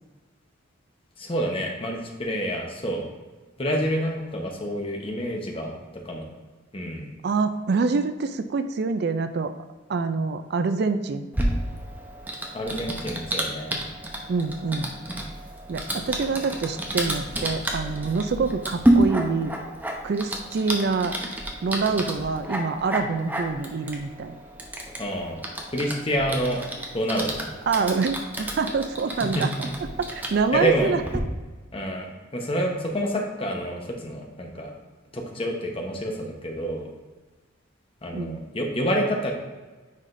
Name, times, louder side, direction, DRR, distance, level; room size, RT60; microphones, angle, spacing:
voice 1, 1.2-3.0 3.6-5.7 6.0-6.2 6.7-7.1 12.5-13.8 25.0-25.4 25.7-26.6 26.9-27.5 29.3-29.5 30.5-30.9 31.7-34.7 35.1-36.9 38.0-39.3, equal, 25° left, 1 dB, 1.0 m, -28 dB
voice 2, 7.2-9.5 9.9-11.3 14.3-14.9 15.7-19.6 20.0-21.2 21.6-24.3 27.7-29.5 30.0-31.0 38.1-38.5, right 4 dB, 50° right, 10 dB, 0.4 m, -26 dB
Typing, 11.3-31.2, right 1 dB, 10° right, 0.7 m, -30 dB
9.5 x 4.9 x 2.6 m, 1.3 s
head